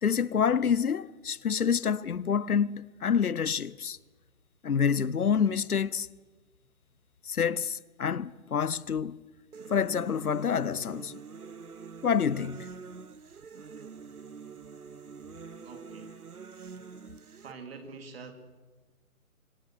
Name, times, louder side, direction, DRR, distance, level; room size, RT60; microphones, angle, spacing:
voice 1, 0.0-4.0 4.6-6.1 7.3-9.2 9.7-11.2 12.0-12.7, left 7 dB, 85° left, 0.8 m, -27 dB
sound 1, 9.5-17.5, right 5 dB, 90° right, 1.0 m, -46 dB
voice 2, 15.6-16.2 17.4-18.3, right 4 dB, 45° right, 3.1 m, -45 dB
26.0 x 20.0 x 6.4 m
figure-of-eight pair, 150°, 43 cm